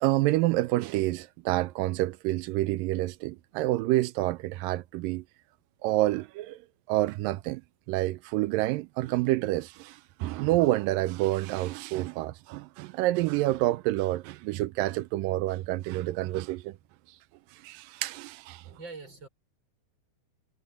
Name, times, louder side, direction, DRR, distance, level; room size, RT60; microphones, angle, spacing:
voice 1, 0.0-5.2 5.8-6.6 6.9-7.6 7.9-16.8 17.5-18.6, right 17 dB, 85° right, 2.3 m, -28 dB
voice 2, 18.6-19.3, right 4 dB, 30° right, 6.4 m, -43 dB
omnidirectional pair, 4.0 m